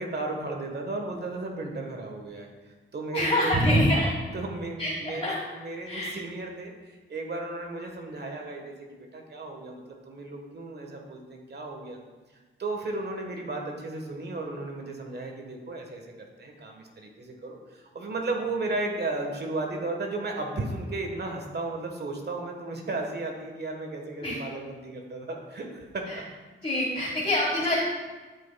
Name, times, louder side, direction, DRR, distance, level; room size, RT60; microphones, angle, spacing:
voice 1, 0.0-2.5 2.9-3.8 4.3-12.0 12.6-16.0 16.4-25.8 26.1-26.2, right 2 dB, 50° right, 2 dB, 1.3 m, -34 dB
voice 2, 3.1-4.1 4.8-5.4 5.8-6.1 24.2-24.4 26.1-26.2 26.6-27.8, left 1 dB, 25° left, -4 dB, 1.6 m, -27 dB
11.5 x 5.5 x 2.3 m, 1.3 s
cardioid pair, 60°, 21 cm